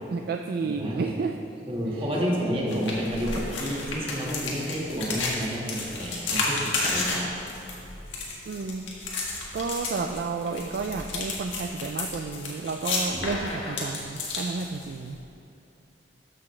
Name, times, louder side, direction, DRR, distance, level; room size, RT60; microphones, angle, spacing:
voice 1, 0.1-1.4 1.9-2.0 8.5-8.9 9.5-15.2, right 4 dB, 55° right, 5 dB, 0.3 m, -31 dB
voice 2, 0.6-1.1 1.7-7.3, equal, 30° right, -3 dB, 1.5 m, -30 dB
sound 1, 2.7-15.1, left 3 dB, 80° left, 1.6 m, -32 dB
13.0 x 6.1 x 3.2 m, 2.9 s
head